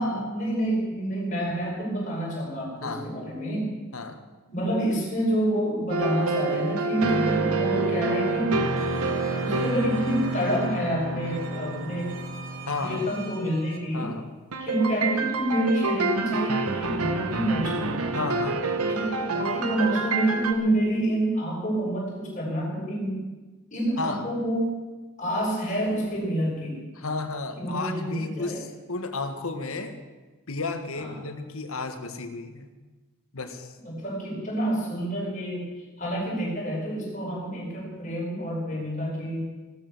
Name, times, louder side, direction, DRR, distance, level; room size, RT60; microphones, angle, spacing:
voice 1, 0.0-3.7 4.5-8.6 9.4-12.1 12.8-14.1 14.6-18.0 18.9-23.3 23.7-24.8 25.2-26.8 27.6-28.6 30.9-31.1 33.8-35.7 36.0-39.4, right 1 dB, 35° left, -3 dB, 5.7 m, -28 dB
voice 2, 2.8-3.2 3.9-4.2 7.1-7.2 12.7-13.1 13.9-14.3 18.1-18.6 24.0-24.2 27.0-30.0 30.5-32.7 33.3-33.7, left 3 dB, 75° left, 7 dB, 1.6 m, -33 dB
sound 1, 5.9-13.7 14.5-20.5, right 3 dB, 80° right, 1.3 m, -28 dB
sound 2, 8.8-13.8, right 4 dB, 60° right, 2.2 m, -44 dB
17.0 x 13.5 x 6.2 m, 1.3 s
head